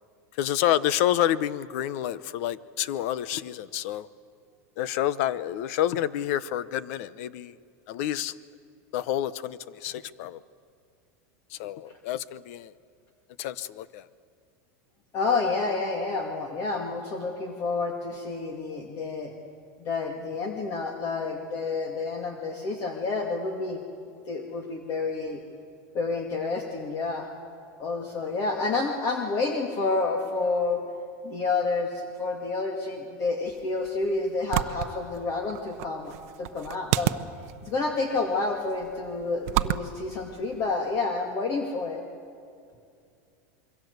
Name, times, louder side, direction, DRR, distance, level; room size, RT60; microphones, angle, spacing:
voice 1, 0.4-4.1 4.8-7.5 7.9-8.3 8.9-10.4 11.6-12.7 13.4-14.0, left 12 dB, 60° left, 17 dB, 0.9 m, -28 dB
voice 2, 15.1-19.3 19.8-23.8 24.3-25.4 25.9-27.3 27.8-30.8 31.2-37.1 37.6-42.0, left 3 dB, 35° left, 3 dB, 2.2 m, -29 dB
sound 1, 33.4-41.0, right 15 dB, 60° right, 0.8 m, -33 dB
27.0 x 23.0 x 8.1 m, 2.4 s
supercardioid pair, 150°, 9 cm